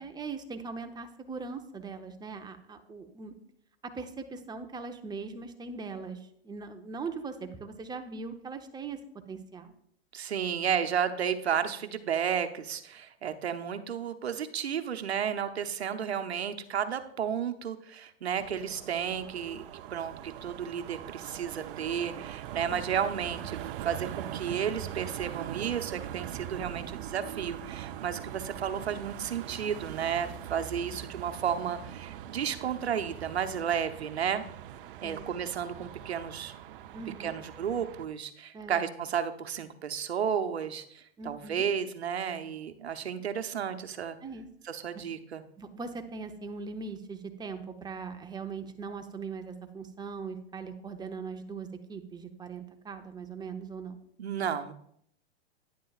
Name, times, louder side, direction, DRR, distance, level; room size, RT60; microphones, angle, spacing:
voice 1, 0.0-3.3 3.8-9.0 9.3-9.7 22.7-22.8 35.0-35.3 36.9-37.4 38.5-38.8 41.2-41.7 44.2-44.5 44.9-45.0 45.6-54.0, right 4 dB, 15° right, 6 dB, 0.8 m, -40 dB
voice 2, 10.1-34.4 35.0-36.5 37.2-44.2 44.7-45.4 54.2-54.7, right 8 dB, 90° right, 8 dB, 0.9 m, -32 dB
sound 1, 18.3-38.1, right 11 dB, 60° right, 0.7 m, -42 dB
11.0 x 10.0 x 2.4 m, 0.69 s
hypercardioid pair, 115°, 31 cm